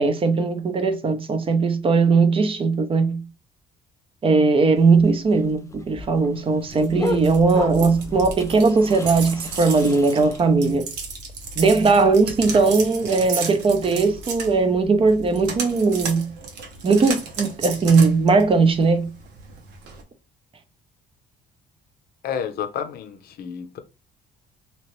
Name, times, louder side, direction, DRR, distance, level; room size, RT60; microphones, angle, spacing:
voice 1, 0.0-3.2 4.2-10.8 11.6-16.3 16.8-19.1, right 4 dB, 30° right, 0.6 m, -19 dB
sound 1, 4.8-10.4, left 3 dB, 20° left, 0.4 m, -33 dB
sound 2, 6.6-20.0, right 4 dB, 80° right, 1.0 m, -34 dB
voice 2, 22.2-23.8, left 8 dB, 65° left, 0.6 m, -30 dB
3.0 x 2.9 x 3.1 m
cardioid pair, 110°, 17 cm